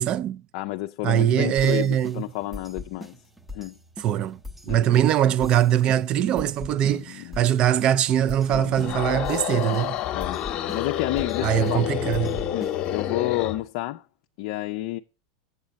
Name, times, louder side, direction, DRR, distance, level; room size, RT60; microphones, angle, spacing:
voice 1, 0.0-0.4 1.0-2.2 4.0-4.4 4.7-9.9 11.4-12.4, right 10 dB, 40° right, 0.4 m, -22 dB
voice 2, 0.5-3.2 3.5-3.8 4.6-4.9 6.8-7.5 8.5-8.7 10.1-11.9 12.5-14.0 14.4-15.0, left 17 dB, 60° left, 0.4 m, -30 dB
sound 1, 1.6-13.1, left 2 dB, 5° right, 0.7 m, -42 dB
sound 2, 8.7-13.6, left 11 dB, 40° left, 0.9 m, -29 dB
8.0 x 7.2 x 5.2 m
supercardioid pair, 125°, 3 cm